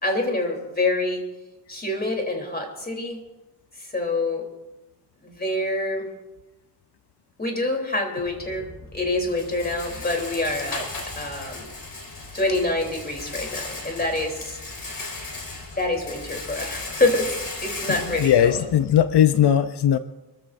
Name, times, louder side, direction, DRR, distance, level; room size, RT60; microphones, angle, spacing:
voice 1, 0.0-1.2 1.7-3.2 3.8-4.4 5.2-6.1 7.4-8.6 8.9-10.9 11.1-11.7 12.3-14.6 15.7-18.6, left 2 dB, 25° left, 2 dB, 3.4 m, -26 dB
Rattle, 8.2-19.2, left 3 dB, 55° left, 4.4 m, -36 dB
voice 2, 18.2-20.0, left 10 dB, 80° left, 10 dB, 0.7 m, -18 dB
29.0 x 14.5 x 2.6 m, 1.1 s
wide cardioid pair, 110°, 39 cm